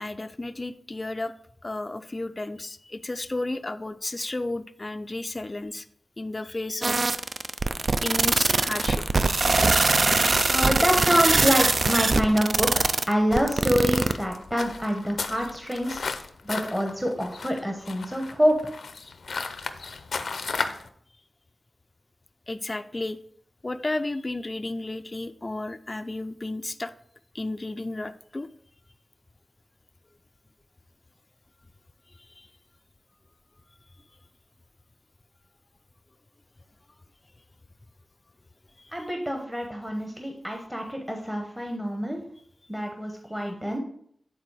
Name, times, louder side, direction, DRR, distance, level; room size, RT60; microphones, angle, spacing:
voice 1, 0.0-1.3 1.6-5.8 6.2-7.1 8.0-9.0 22.5-23.2 23.6-26.9 27.3-28.5 32.4-32.5 38.8-38.9, left 2 dB, 25° left, 10 dB, 0.4 m, -33 dB
sound 1, 6.8-14.1, right 3 dB, 50° right, 0.4 m, -22 dB
sound 2, 8.7-20.9, left 4 dB, 85° left, 0.6 m, -36 dB
voice 2, 10.5-18.7 38.9-42.2 42.7-43.8, equal, 10° right, 2 dB, 0.9 m, -26 dB
8.9 x 4.2 x 4.7 m, 0.65 s
wide cardioid pair, 125°, 0 cm